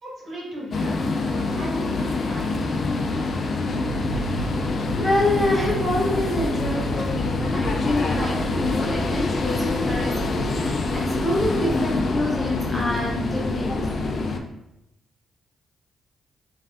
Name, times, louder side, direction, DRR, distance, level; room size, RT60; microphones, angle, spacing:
voice 1, 0.0-2.7, equal, 65° right, -5 dB, 1.2 m, -36 dB
sound 1, 0.7-14.4, left 3 dB, 55° left, 0.3 m, -26 dB
sound 2, 3.6-12.2, equal, 85° left, 0.8 m, -33 dB
voice 2, 4.9-14.2, left 1 dB, 10° left, -4 dB, 0.9 m, -27 dB
3.2 x 2.5 x 2.4 m, 0.88 s
supercardioid pair, 55°, 0 cm